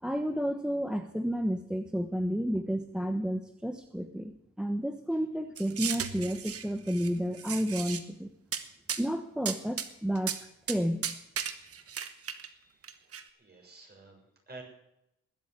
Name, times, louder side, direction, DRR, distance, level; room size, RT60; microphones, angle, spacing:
voice 1, 0.0-8.3 9.0-10.3 10.7-11.0, equal, 5° right, 7 dB, 1.0 m, -31 dB
sound 1, 5.6-7.1 7.3-8.0 8.5-8.6 8.9-9.0 9.5-9.9 10.2-10.4 10.7-10.8 11.0-12.5 12.8-13.2, right 8 dB, 50° right, 1.4 m, -35 dB
voice 2, 11.4-14.6, right 3 dB, 30° right, 1 dB, 6.9 m, -54 dB
20.0 x 8.4 x 8.3 m, 0.82 s
cardioid pair, 90°, 30 cm